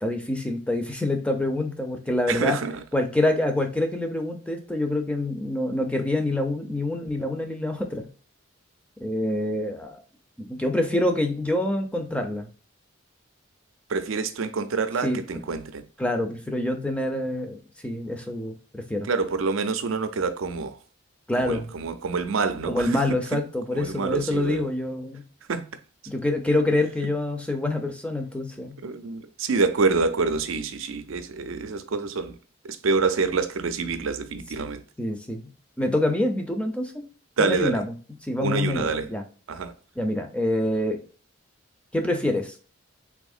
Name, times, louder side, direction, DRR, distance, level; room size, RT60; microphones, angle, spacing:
voice 1, 0.0-2.6 2.9-8.1 9.0-10.0 10.4-12.5 15.0-15.2 16.0-17.6 17.8-19.1 21.3-21.7 22.7-25.2 26.1-28.8 35.0-35.5 35.8-37.0 37.4-37.9 38.2-39.2 40.0-41.0 41.9-42.5, left 1 dB, 5° left, 0.4 m, -26 dB
voice 2, 2.3-2.8 13.9-15.8 19.1-20.8 21.4-23.0 23.7-24.6 25.5-25.6 28.8-32.4 32.6-34.8 37.4-37.8 38.4-39.1 39.5-39.7, right 4 dB, 85° right, 0.5 m, -26 dB
3.6 x 2.8 x 2.4 m
head